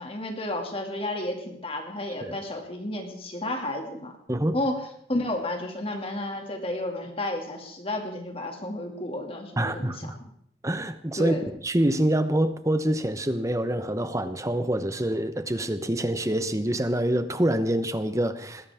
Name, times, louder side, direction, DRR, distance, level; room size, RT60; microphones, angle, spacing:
voice 1, 0.0-4.1 4.5-4.8 5.1-9.9 11.2-11.4, left 1 dB, 30° left, 3 dB, 2.4 m, -31 dB
voice 2, 9.6-10.2 10.6-18.7, right 1 dB, 15° right, 10 dB, 1.0 m, -26 dB
20.5 x 16.0 x 3.6 m, 0.70 s
head